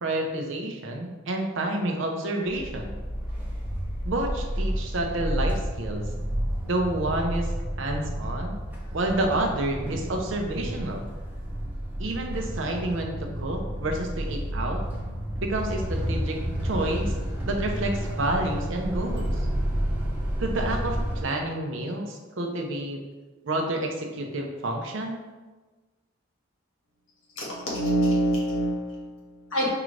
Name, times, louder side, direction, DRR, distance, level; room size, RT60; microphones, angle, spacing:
voice 1, 0.0-3.0 4.0-6.0 6.6-7.5 7.8-8.6 8.9-11.1 12.0-14.8 15.4-17.1 17.5-19.4 20.4-23.0 23.4-25.2, right 1 dB, 70° right, 2 dB, 0.6 m, -29 dB
sound 1, 2.4-21.2, equal, 10° right, 0.8 m, -30 dB
voice 2, 27.4-29.7, right 1 dB, 90° left, -5 dB, 1.5 m, -26 dB
4.6 x 2.5 x 3.2 m, 1.3 s
head